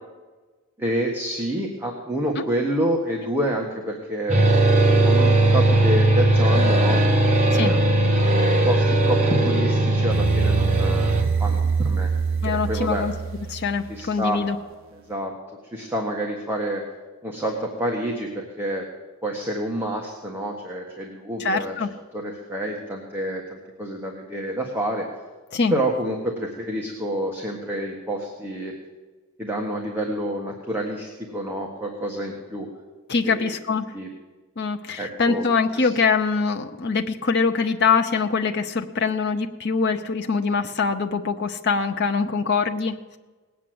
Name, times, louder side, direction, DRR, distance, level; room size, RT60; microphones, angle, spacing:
voice 1, 0.8-4.4 5.0-7.0 7.5-8.3 8.6-13.0 13.9-14.4 14.9-15.3 15.7-16.8 17.2-18.8 19.2-21.7 22.1-25.1 25.7-28.7 29.4-32.7 33.2-33.5 33.9-34.1 35.0-35.4 35.8-35.9, right 1 dB, 10° right, -1 dB, 1.6 m, -28 dB
sound 1, 4.3-11.2, right 1 dB, 30° right, 1.8 m, -18 dB
sound 2, 10.1-14.2, right 5 dB, 60° right, 0.9 m, -25 dB
voice 2, 12.4-13.1 13.5-14.6 21.4-21.9 25.5-25.8 33.1-33.8 34.6-43.2, left 5 dB, 50° left, 4 dB, 0.7 m, -23 dB
19.5 x 8.5 x 7.8 m, 1.3 s
head